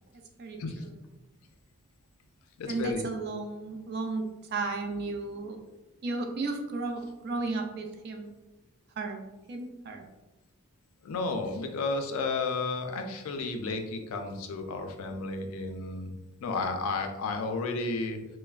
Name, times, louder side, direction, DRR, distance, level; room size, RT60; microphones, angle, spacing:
voice 1, 0.1-1.0 2.7-5.6 6.0-8.3 9.0-9.2 9.5-10.0, right 3 dB, 50° right, 4 dB, 0.3 m, -34 dB
voice 2, 2.6-3.0 11.0-16.1 16.4-18.2, left 3 dB, 80° left, 5 dB, 0.4 m, -32 dB
3.2 x 2.0 x 2.3 m, 1.1 s
head